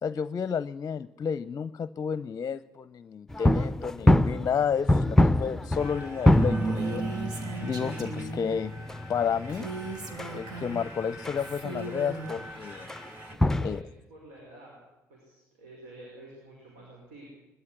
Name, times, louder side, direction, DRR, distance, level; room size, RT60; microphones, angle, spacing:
voice 1, 0.0-7.1 7.6-8.7 9.1-9.7 10.3-12.9 13.6-13.8, left 7 dB, 40° left, 17 dB, 0.6 m, -31 dB
sound 1, 3.3-11.4 11.7-11.8 12.3-12.5 12.9-13.1 13.3-13.8, left 1 dB, 5° left, 0.8 m, -26 dB
sound 2, 5.8-13.4, equal, 25° right, 4.6 m, -46 dB
Female speech woman speaking, 6.6-8.5 9.5-10.9 11.4-12.3, right 3 dB, 65° right, 3.0 m, -38 dB
voice 2, 13.3-14.8 15.1-17.2, right 1 dB, 85° right, -2 dB, 5.6 m, -50 dB
20.0 x 13.0 x 10.0 m, 1.1 s
hypercardioid pair, 55°, 7 cm